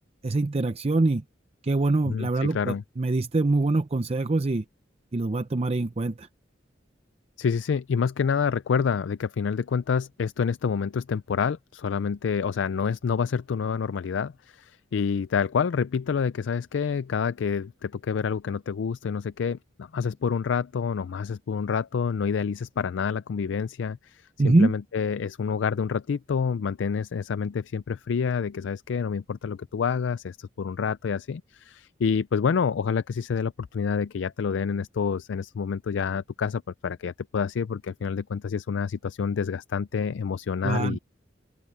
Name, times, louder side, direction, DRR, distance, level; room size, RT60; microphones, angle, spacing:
voice 1, 0.2-1.2 1.6-4.6 5.1-6.3 24.4-24.7 40.6-41.0, right 2 dB, 35° right, 0.5 m, -24 dB
voice 2, 2.0-2.8 7.4-41.0, left 6 dB, 80° left, 0.4 m, -28 dB
open air
head